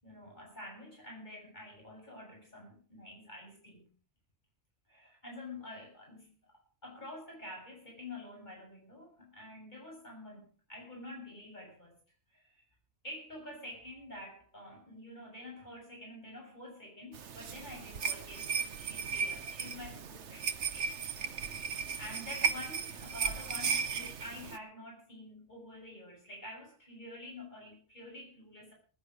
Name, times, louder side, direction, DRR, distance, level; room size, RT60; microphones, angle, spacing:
voice 1, 0.0-3.9 4.9-12.0 12.3-12.6 13.0-21.6 22.0-28.7, left 1 dB, 40° left, -2 dB, 7.3 m, -48 dB
sound 1, 17.1-24.6, right 6 dB, 75° right, 1.3 m, -36 dB
20.0 x 10.0 x 5.3 m, 0.38 s
omnidirectional pair, 1.2 m